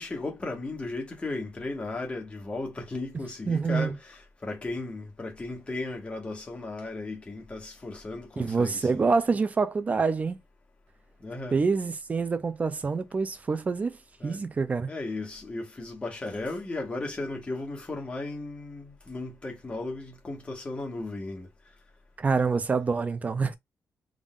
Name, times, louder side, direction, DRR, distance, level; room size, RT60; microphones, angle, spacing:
voice 1, 0.0-9.0 11.2-11.6 14.2-14.4 14.9-21.5, left 2 dB, 20° left, 1.4 m, -35 dB
voice 2, 3.5-3.9 8.4-10.4 11.5-14.0 14.2-14.9 22.2-23.6, right 4 dB, 25° right, 0.5 m, -26 dB
3.6 x 3.5 x 2.4 m
wide cardioid pair, 170°, 6 cm